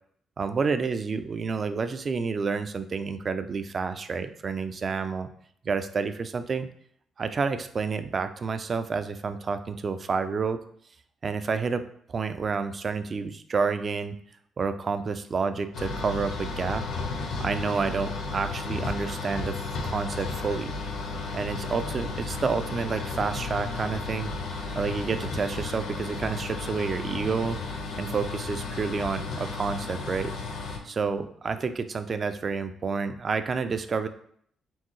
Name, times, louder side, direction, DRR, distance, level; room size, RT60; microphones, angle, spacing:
voice 1, 0.4-5.3 5.6-6.7 7.2-10.6 11.2-14.2 14.6-16.8 17.4-20.8 21.3-27.6 28.0-30.3 30.8-34.1, right 5 dB, 40° right, 10 dB, 0.4 m, -29 dB
sound 1, 15.7-30.8, left 3 dB, 70° left, 0.9 m, -33 dB
4.5 x 3.5 x 3.1 m, 0.65 s
cardioid pair, 90°, 0 cm